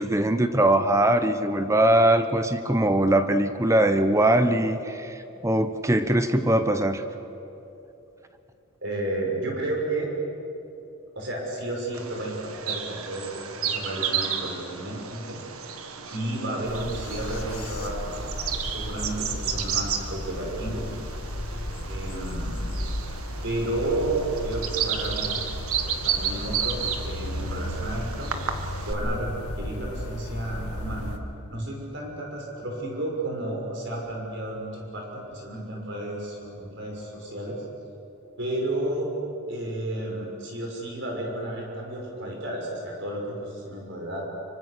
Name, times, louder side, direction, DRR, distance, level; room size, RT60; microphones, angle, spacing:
voice 1, 0.0-7.1, right 1 dB, 15° right, 10 dB, 0.8 m, -21 dB
voice 2, 8.8-10.1 11.1-15.4 16.1-18.3 18.6-21.0 21.9-22.8 23.4-25.3 26.0-28.3 28.9-31.1 31.5-37.6 38.4-39.1 39.5-44.3, right 1 dB, 55° right, -1 dB, 6.0 m, -32 dB
Bird vocalization bird call bird song, 11.9-28.9, right 7 dB, 75° right, 1.7 m, -33 dB
sound 1, 16.6-31.2, left 1 dB, 90° left, 1.8 m, -34 dB
25.5 x 24.0 x 6.7 m, 2.8 s
head